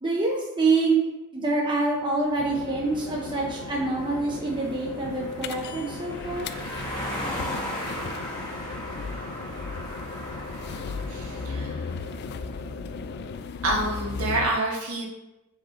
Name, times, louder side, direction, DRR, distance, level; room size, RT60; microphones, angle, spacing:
voice 1, 0.0-1.0 1.3-6.5, right 3 dB, 20° right, -2 dB, 0.7 m, -26 dB
sound 1, 1.9-12.2, equal, 20° left, 1.1 m, -38 dB
sound 2, 2.4-13.4, left 2 dB, 65° left, 0.7 m, -39 dB
sound 3, 5.4-14.5, left 5 dB, 50° left, 0.3 m, -37 dB
voice 2, 11.1-11.9 13.6-15.1, right 1 dB, 80° right, -2 dB, 1.4 m, -27 dB
5.3 x 4.9 x 3.8 m, 0.98 s
head